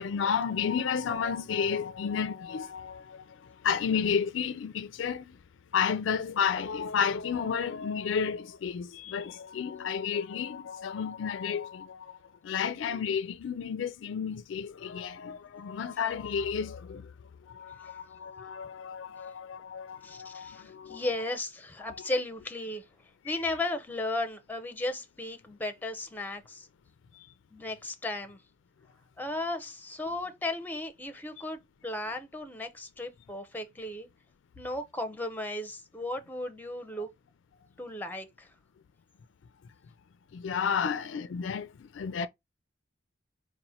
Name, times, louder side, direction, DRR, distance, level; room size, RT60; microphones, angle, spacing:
voice 1, 0.0-5.4 5.7-12.2 12.4-17.1 17.4-21.1 21.8-22.1 23.3-23.4 27.1-27.3 40.3-42.3, left 7 dB, 70° left, 0.4 m, -32 dB
voice 2, 20.0-22.9 23.2-26.7 27.5-28.4 29.2-34.1 34.6-37.1 37.8-38.5, left 2 dB, 10° left, 0.6 m, -35 dB
4.0 x 2.1 x 4.2 m
head